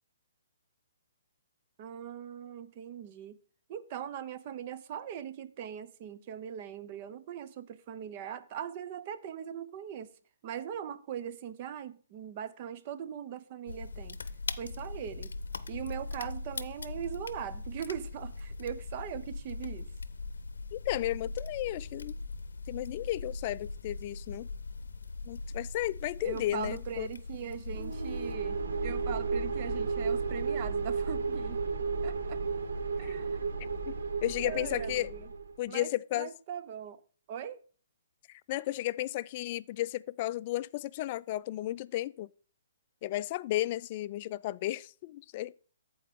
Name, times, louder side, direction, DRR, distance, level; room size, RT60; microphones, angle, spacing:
voice 1, 1.8-3.4 3.7-10.1 10.4-14.2 14.6-15.3 15.7-19.9 26.2-31.6 32.0-32.4 33.0-33.4 34.4-35.3 35.7-37.0 37.3-37.6, right 9 dB, 40° right, 0.8 m, -40 dB
sound 1, 13.7-28.4, left 3 dB, 85° left, 0.7 m, -40 dB
voice 2, 20.7-22.2 22.7-24.5 25.3-27.1 33.9-34.0 34.2-35.1 35.6-36.3 38.3-42.3 43.0-45.5, left 15 dB, 40° left, 0.3 m, -33 dB
sound 2, 27.7-35.5, right 4 dB, 70° right, 1.2 m, -33 dB
14.0 x 4.6 x 3.7 m
hypercardioid pair, 140°, 0 cm